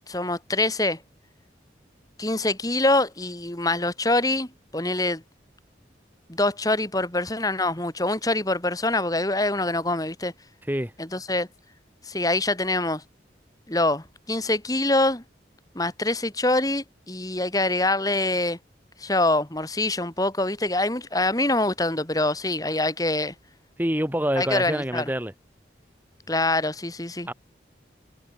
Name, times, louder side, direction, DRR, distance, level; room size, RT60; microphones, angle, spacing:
voice 1, 0.1-1.0 2.2-5.2 6.3-10.3 11.0-11.5 12.0-13.0 13.7-15.2 15.7-18.6 19.0-23.3 24.4-25.1 26.3-27.3, left 2 dB, 20° left, 2.7 m, -25 dB
voice 2, 23.8-25.3 27.3-27.4, equal, 10° right, 3.1 m, -26 dB
head